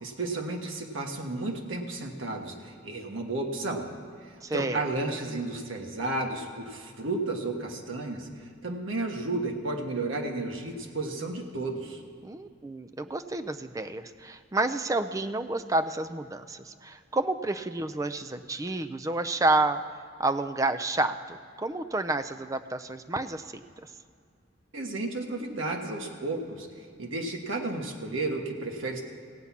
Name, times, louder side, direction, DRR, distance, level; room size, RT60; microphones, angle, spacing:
voice 1, 0.0-3.9 4.2-12.0 24.7-29.0, right 2 dB, 80° right, 1 dB, 1.4 m, -33 dB
voice 2, 4.4-4.9 12.2-19.8 20.2-23.4, right 2 dB, 15° right, 10 dB, 0.4 m, -29 dB
16.0 x 8.4 x 5.9 m, 2.2 s
head